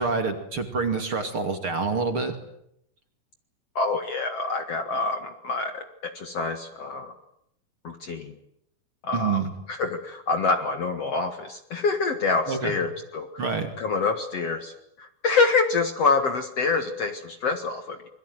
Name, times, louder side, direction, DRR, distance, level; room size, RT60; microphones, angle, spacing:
voice 1, 0.0-2.3 9.1-9.5 12.5-12.7 13.4-13.7, right 4 dB, 40° right, 6 dB, 3.0 m, -27 dB
voice 2, 3.8-7.1 7.8-8.3 9.0-9.4 9.7-13.5 13.8-18.0, left 4 dB, 50° left, 7 dB, 2.4 m, -26 dB
27.5 x 22.5 x 9.4 m, 0.76 s
omnidirectional pair, 4.4 m